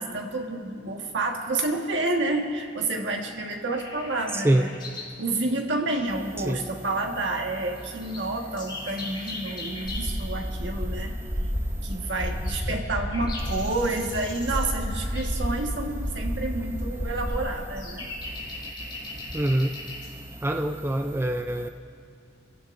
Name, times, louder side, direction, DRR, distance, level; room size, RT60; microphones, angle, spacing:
voice 1, 0.0-4.7 5.2-11.1 11.8-18.1, right 2 dB, 70° right, 2 dB, 1.5 m, -29 dB
sound 1, 3.7-5.2 5.5-5.6 6.3-6.4 6.5-6.9 7.4-7.5 7.7-10.2 10.8-20.1 20.8-21.1, left 1 dB, 25° left, 4.7 m, -38 dB
sound 2, 9.8-17.4, equal, 45° left, 4.0 m, -31 dB
voice 2, 19.3-19.8 20.4-21.7, right 1 dB, 15° right, 5 dB, 0.4 m, -24 dB
27.0 x 15.5 x 2.6 m, 2.2 s
head